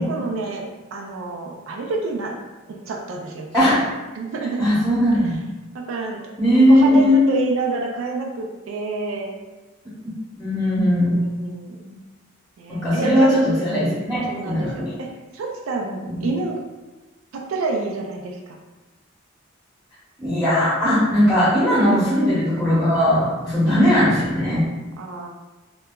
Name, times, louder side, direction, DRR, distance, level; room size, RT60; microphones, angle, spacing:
voice 1, 0.0-2.4 2.7-3.5 4.1-4.7 5.7-6.2 6.5-9.3 10.6-12.0 12.6-13.3 13.7-15.1 15.3-16.7 17.3-18.6 21.9-22.1 25.0-25.3, right 3 dB, 90° right, 1 dB, 0.4 m, -28 dB
voice 2, 4.6-5.4 6.4-7.2 10.4-11.2 12.7-14.9 16.1-16.3 20.2-24.6, equal, ahead, -12 dB, 0.8 m, -18 dB
2.8 x 2.3 x 2.2 m, 1.2 s
head